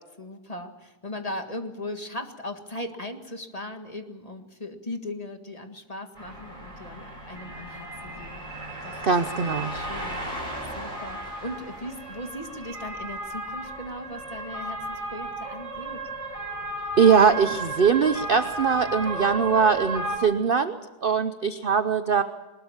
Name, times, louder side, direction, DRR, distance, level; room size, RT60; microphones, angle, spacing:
voice 1, 0.2-9.0 9.3-10.5 10.8-16.0, left 1 dB, 25° left, 6 dB, 1.8 m, -38 dB
sound 1, 6.2-20.2, right 1 dB, 20° right, 6.9 m, -34 dB
voice 2, 9.0-9.7 17.0-22.2, right 6 dB, 45° right, 10 dB, 0.8 m, -21 dB
21.5 x 20.0 x 7.3 m, 1.1 s
omnidirectional pair, 1.7 m